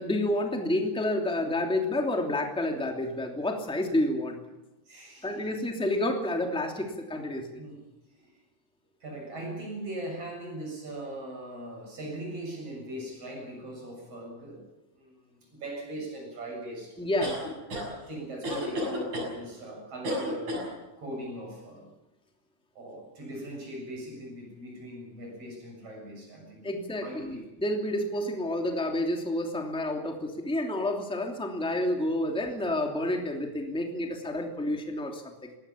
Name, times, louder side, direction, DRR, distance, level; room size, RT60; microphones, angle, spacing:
voice 1, 0.0-4.4 5.2-7.6 17.0-17.4 26.6-35.5, left 1 dB, ahead, 2 dB, 2.5 m, -29 dB
voice 2, 4.9-5.5 7.6-7.8 8.1-8.4 9.0-14.6 14.9-17.0 17.4-17.6 18.1-20.6 21.0-21.9 22.7-27.5, right 1 dB, 55° right, 1 dB, 8.2 m, -40 dB
sound 1, 17.2-17.9 18.4-19.3 20.0-20.7, equal, 75° right, 8.5 m, -31 dB
20.5 x 18.0 x 8.8 m, 1.0 s
omnidirectional pair, 3.3 m